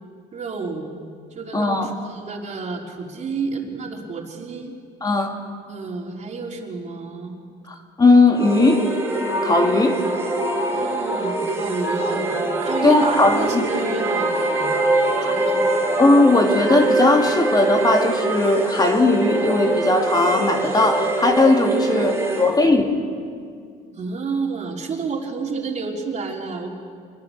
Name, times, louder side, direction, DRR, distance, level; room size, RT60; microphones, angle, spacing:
voice 1, 0.3-0.9 1.3-4.7 5.7-7.4 10.7-12.3 12.6-14.8 15.1-15.6 23.9-26.7, right 4 dB, 45° right, 1 dB, 3.8 m, -30 dB
voice 2, 1.5-1.9 5.0-5.3 7.7-8.9 9.4-10.0 12.8-13.7 15.2-15.4 16.0-23.0, left 2 dB, 25° left, 3 dB, 2.4 m, -18 dB
sound 1, 8.3-22.5, right 2 dB, 15° right, 3.9 m, -23 dB
26.0 x 21.0 x 6.7 m, 2.1 s
cardioid pair, 110°, 17 cm